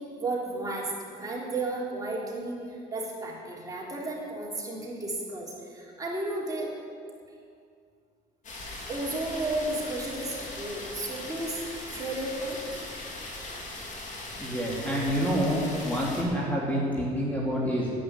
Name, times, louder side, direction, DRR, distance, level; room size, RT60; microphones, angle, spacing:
voice 1, 0.0-6.7 8.9-11.6 11.9-12.9, right 2 dB, 20° right, -4 dB, 3.6 m, -33 dB
sound 1, 8.4-16.2, left 2 dB, 45° left, 3.1 m, -39 dB
voice 2, 14.4-17.9, equal, 10° left, -4 dB, 2.7 m, -27 dB
10.5 x 9.1 x 9.8 m, 2.3 s
cardioid pair, 110°, 17 cm